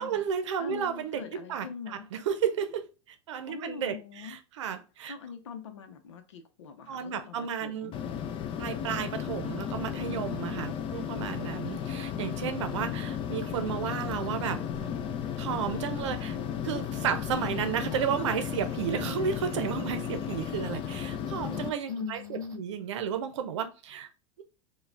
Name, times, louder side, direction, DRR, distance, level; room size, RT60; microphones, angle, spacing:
voice 1, 0.0-5.1 6.9-7.9 8.6-14.6 15.4-16.4 16.6-24.1, right 8 dB, 80° right, 0.7 m, -33 dB
voice 2, 0.6-2.1 3.5-4.4 5.1-7.9 21.9-22.7, left 6 dB, 90° left, 0.7 m, -41 dB
sound 1, 7.9-21.7, left 9 dB, 35° left, 0.5 m, -34 dB
sound 2, 14.7-16.3 17.0-22.6, right 5 dB, 25° right, 0.7 m, -50 dB
4.7 x 2.3 x 3.4 m
hypercardioid pair, 105°, 15 cm